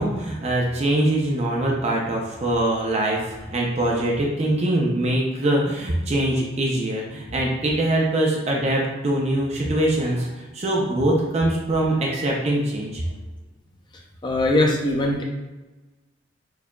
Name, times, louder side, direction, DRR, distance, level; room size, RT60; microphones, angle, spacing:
voice 1, 0.0-13.0, right 1 dB, 35° right, -2 dB, 0.5 m, -23 dB
voice 2, 14.2-15.2, left 1 dB, 25° left, 0 dB, 0.5 m, -21 dB
4.6 x 2.7 x 2.2 m, 1.1 s
head